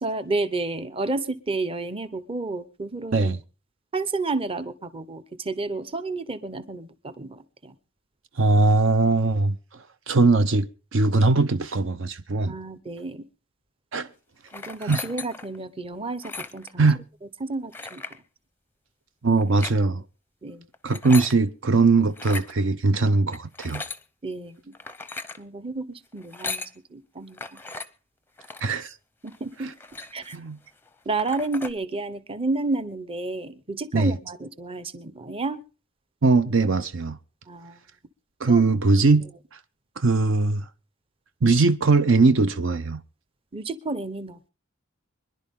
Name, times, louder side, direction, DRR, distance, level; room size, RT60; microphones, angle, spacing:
voice 1, 0.0-3.3 3.9-7.7 12.4-13.3 14.5-16.9 17.4-18.0 20.4-20.7 24.2-24.7 25.4-26.6 26.9-27.6 29.2-29.7 30.1-30.4 31.0-35.6 37.5-37.8 38.5-38.6 43.5-44.5, right 3 dB, 25° right, 0.9 m, -31 dB
voice 2, 8.4-12.6 13.9-14.1 14.8-15.0 16.8-17.0 19.2-20.0 20.8-23.8 28.6-28.9 29.6-29.7 30.3-30.6 33.9-34.1 36.2-37.2 38.4-39.6 40.0-40.7 41.4-43.0, right 3 dB, 60° right, 0.6 m, -21 dB
sound 1, 14.5-15.6 16.1-16.7 17.7-18.2 19.4-19.8 20.7-21.4 22.1-22.5 23.3-24.0 24.7-25.4 26.2-26.7 27.4-27.9 28.4-28.7 29.3-29.4 29.6-30.5 30.9-31.0 31.2-31.7, left 3 dB, 10° left, 0.6 m, -36 dB
25.0 x 11.0 x 3.7 m
head